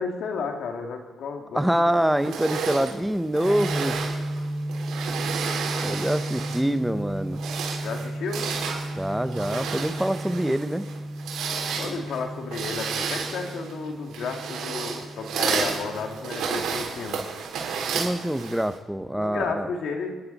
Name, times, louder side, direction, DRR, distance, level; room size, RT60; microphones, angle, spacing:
voice 1, 0.0-1.9 7.8-8.5 11.7-17.3 19.1-20.2, left 4 dB, 70° left, 3 dB, 2.5 m, -32 dB
voice 2, 1.5-4.0 5.8-7.4 9.0-10.8 17.9-19.7, right 1 dB, 5° right, 11 dB, 0.9 m, -25 dB
sound 1, 2.2-6.8 7.2-18.8, right 6 dB, 80° right, 4.0 m, -32 dB
sound 2, 3.4-16.9, right 1 dB, 15° left, 2.5 m, -34 dB
28.0 x 11.0 x 4.2 m, 1.5 s
cardioid pair, 90°, 0 cm